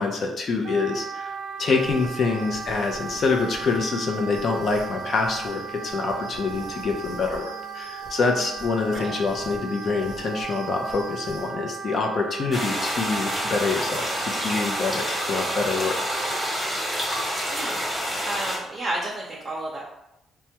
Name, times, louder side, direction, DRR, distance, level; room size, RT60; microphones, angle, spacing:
voice 1, 0.0-1.3 1.6-16.0, left 4 dB, 50° left, 2 dB, 0.5 m, -26 dB
Wind instrument woodwind instrument, 0.6-16.5, right 6 dB, 65° right, 0.3 m, -36 dB
sound 1, 1.6-11.5, left 1 dB, 85° left, 0.8 m, -45 dB
sound 2, 12.5-18.6, equal, 5° left, 0.9 m, -28 dB
voice 2, 18.3-19.9, right 1 dB, 30° right, -4 dB, 0.6 m, -31 dB
3.3 x 2.2 x 2.8 m, 0.86 s
cardioid pair, 90°, 0 cm